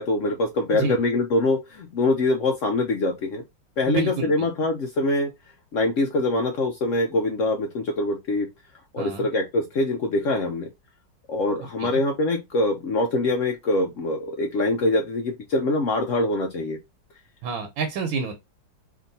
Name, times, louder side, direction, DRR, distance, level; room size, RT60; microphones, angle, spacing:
voice 1, 0.0-3.4 3.8-5.3 5.7-8.5 8.9-10.7 11.3-16.8, left 2 dB, 90° left, 0.6 m, -24 dB
voice 2, 3.9-4.5 9.0-9.3 11.8-12.0 17.4-18.3, right 4 dB, 75° right, 1.6 m, -28 dB
3.6 x 2.6 x 3.9 m
omnidirectional pair, 2.2 m